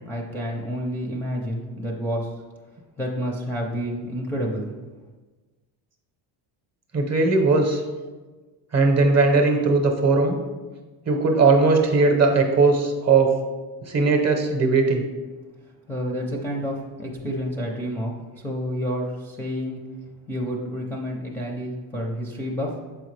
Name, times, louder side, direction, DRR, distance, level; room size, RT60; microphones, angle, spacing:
voice 1, 0.0-2.3 3.0-4.7 15.9-19.8 20.3-22.8, equal, 5° left, -3 dB, 0.5 m, -29 dB
voice 2, 6.9-7.8 8.7-10.4 11.1-13.4 13.8-15.0, right 3 dB, 35° right, 3 dB, 0.8 m, -19 dB
7.0 x 4.8 x 3.2 m, 1.3 s
cardioid pair, 140°, 46 cm